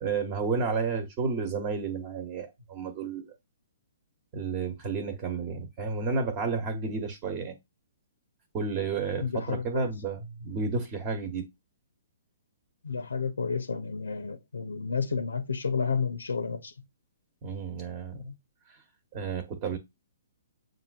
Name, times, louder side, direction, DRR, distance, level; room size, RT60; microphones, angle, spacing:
voice 1, 0.0-3.3 4.3-7.6 8.5-11.5 17.4-18.3 19.1-19.8, right 4 dB, 35° right, 1.1 m, -31 dB
voice 2, 9.2-9.9 12.8-16.7, left 5 dB, 80° left, 0.6 m, -31 dB
7.7 x 2.6 x 2.3 m
figure-of-eight pair, 125°, 0 cm